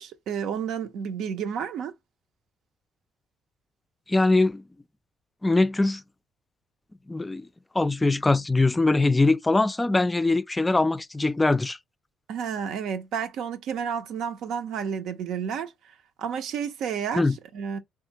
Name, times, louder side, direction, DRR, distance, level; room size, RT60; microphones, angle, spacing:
voice 1, 0.0-1.9 12.3-15.7 16.2-17.2 17.5-17.8, right 7 dB, 75° right, 0.6 m, -31 dB
voice 2, 4.1-4.6 5.4-6.0 7.1-7.5 7.8-11.8 17.1-17.4, left 2 dB, 15° left, 0.3 m, -22 dB
3.6 x 2.3 x 2.8 m
supercardioid pair, 75°, 0 cm